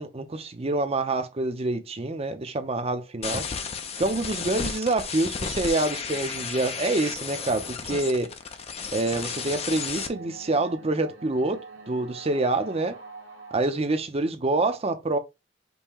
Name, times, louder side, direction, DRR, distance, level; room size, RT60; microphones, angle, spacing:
voice 1, 0.0-3.5 4.0-8.3 8.9-13.0 13.5-15.2, right 2 dB, 30° right, 0.6 m, -26 dB
sound 1, 3.2-10.1, left 6 dB, 30° left, 0.5 m, -33 dB
sound 2, 7.1-13.6, right 3 dB, 75° right, 1.3 m, -46 dB
5.4 x 2.2 x 4.4 m
head